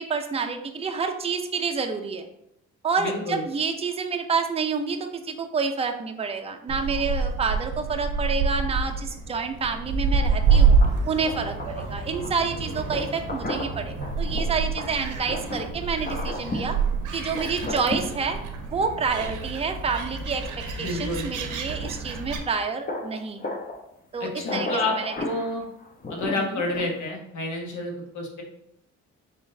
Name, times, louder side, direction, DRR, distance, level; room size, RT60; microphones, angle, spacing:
voice 1, 0.0-2.3 2.8-10.8 11.1-16.8 17.1-18.4 18.7-20.5 20.8-23.5 24.1-25.1 26.4-26.6, right 5 dB, 20° right, 5 dB, 0.5 m, -28 dB
voice 2, 3.0-3.4 20.8-21.3 24.2-24.9 25.2-25.6 26.1-28.4, left 2 dB, 70° left, 0 dB, 1.1 m, -29 dB
Gull seagull, 6.7-22.4, right 5 dB, 85° right, 0.7 m, -27 dB
sound 1, 10.5-11.9 12.2-12.3 12.9-15.7 16.0-16.7 17.3-18.2 19.2-19.5 21.8-22.0 22.5-22.6 22.8-23.8 24.4-26.9, left 2 dB, 30° left, 0.8 m, -34 dB
4.0 x 3.7 x 2.7 m, 0.79 s
cardioid pair, 90°, 30 cm